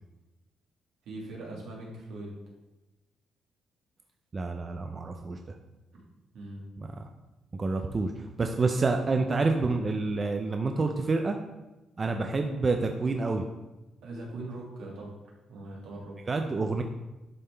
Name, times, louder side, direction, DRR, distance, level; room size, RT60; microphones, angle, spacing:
voice 1, 1.1-2.4 5.9-6.0 6.3-6.7 14.0-15.1 15.5-16.2, right 2 dB, 80° right, -3 dB, 2.1 m, -41 dB
voice 2, 4.3-5.4 6.8-7.1 7.5-11.4 12.0-13.4 16.3-16.8, right 3 dB, 30° right, 5 dB, 0.5 m, -28 dB
11.0 x 3.7 x 3.4 m, 1.0 s
cardioid pair, 90°, 0 cm